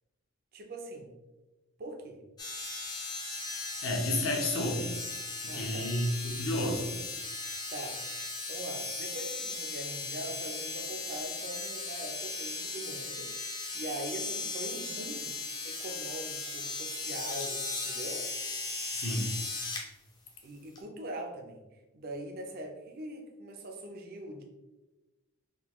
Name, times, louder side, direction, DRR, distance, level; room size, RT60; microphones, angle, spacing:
voice 1, 0.5-1.1 1.8-2.2 5.5-5.9 7.3-8.0 8.5-13.3 13.7-15.3 15.6-18.2 20.4-21.6 21.9-24.4, right 1 dB, 45° right, 3 dB, 0.4 m, -42 dB
sound 1, 2.4-19.8 20.7-20.8, left 3 dB, 20° left, 0.4 m, -37 dB
voice 2, 3.8-5.0 5.4-6.9 18.9-19.3, left 1 dB, 65° left, 1 dB, 0.7 m, -31 dB
3.7 x 2.2 x 3.0 m, 1.1 s
head